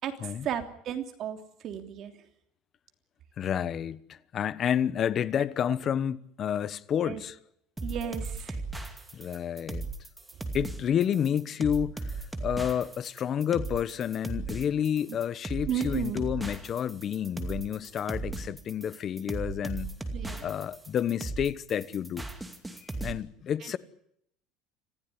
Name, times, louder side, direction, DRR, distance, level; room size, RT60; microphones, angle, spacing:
voice 1, 0.0-1.4 1.6-2.1 7.0-7.2 7.8-8.6 15.7-16.2 20.1-20.5 23.6-23.7, right 9 dB, 40° right, 3.2 m, -34 dB
voice 2, 3.4-7.3 9.1-9.9 10.5-19.9 20.4-22.2 22.8-23.8, left 9 dB, 35° left, 1.1 m, -30 dB
sound 1, 7.8-23.1, right 3 dB, 10° right, 2.4 m, -36 dB
26.5 x 15.5 x 9.9 m
cardioid pair, 145°, 0 cm